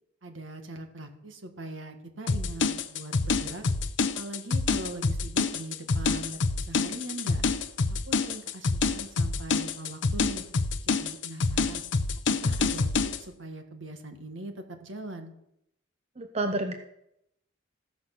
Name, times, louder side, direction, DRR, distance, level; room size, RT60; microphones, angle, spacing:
voice 1, 0.2-3.7 4.0-7.5 7.9-10.4 10.8-11.8 12.3-15.3, right 1 dB, 75° right, 5 dB, 1.7 m, -41 dB
sound 1, 2.3-13.2, left 4 dB, 65° left, 0.7 m, -27 dB
voice 2, 16.2-16.7, right 2 dB, 35° right, 5 dB, 0.8 m, -29 dB
15.5 x 6.2 x 6.0 m, 0.81 s
head